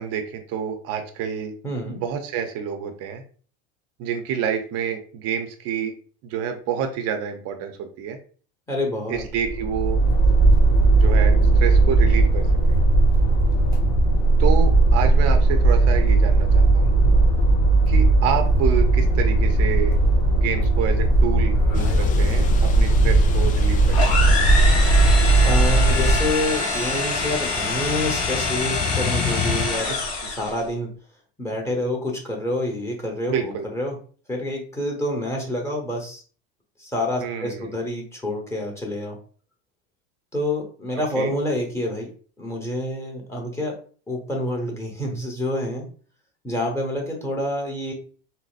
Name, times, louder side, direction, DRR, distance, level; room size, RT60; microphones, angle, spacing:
voice 1, 0.0-1.5 1.9-3.2 4.0-5.9 6.2-8.2 9.1-10.0 10.8-12.8 14.4-16.9 17.9-20.0 20.3-24.4 29.8-30.0 33.3-33.7 37.2-37.8 41.1-41.3, right 8 dB, 50° right, 5 dB, 0.6 m, -28 dB
voice 2, 1.6-2.0 8.7-9.2 25.4-29.9 30.3-30.9 31.4-34.0 34.3-36.2 36.8-39.2 40.3-42.1 42.4-43.7 44.1-45.9 46.4-47.9, left 1 dB, 10° left, 0 dB, 1.0 m, -27 dB
sound 1, 9.1-26.4, right 2 dB, 80° left, 1.0 m, -17 dB
sound 2, 21.7-29.7, left 7 dB, 25° left, 0.4 m, -32 dB
sound 3, 23.9-30.6, left 3 dB, 50° left, 1.2 m, -25 dB
4.0 x 2.1 x 2.4 m, 0.42 s
supercardioid pair, 115°, 31 cm